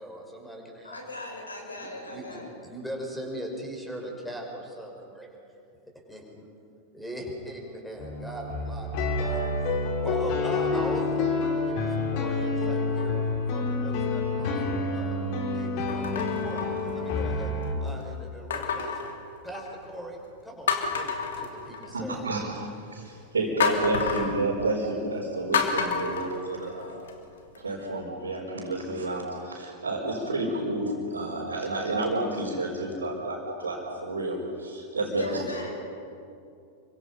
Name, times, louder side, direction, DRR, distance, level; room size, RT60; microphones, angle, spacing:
voice 1, 0.0-1.2 1.8-5.3 6.1-6.5 6.9-8.9 9.2-9.4 10.0-13.1 13.5-15.2 15.5-17.5 17.8-19.0 19.4-22.2, right 1 dB, ahead, 0 dB, 5.8 m, -40 dB
voice 2, 0.8-2.5 35.0-35.7, left 2 dB, 80° left, 0 dB, 6.1 m, -38 dB
sound 1, 8.0-17.8, left 3 dB, 45° left, 3.7 m, -28 dB
sound 2, 13.0-13.4 14.1-14.2 15.9-17.4 18.5-19.9 20.3-20.4 20.7-22.2 23.6-24.4 25.5-27.1 27.6-27.7, left 6 dB, 60° left, 2.8 m, -30 dB
voice 3, 21.9-22.5 22.9-26.9 27.6-35.4, right 2 dB, 75° right, -5 dB, 4.7 m, -30 dB
29.5 x 24.5 x 5.7 m, 2.5 s
figure-of-eight pair, 90°, 0 cm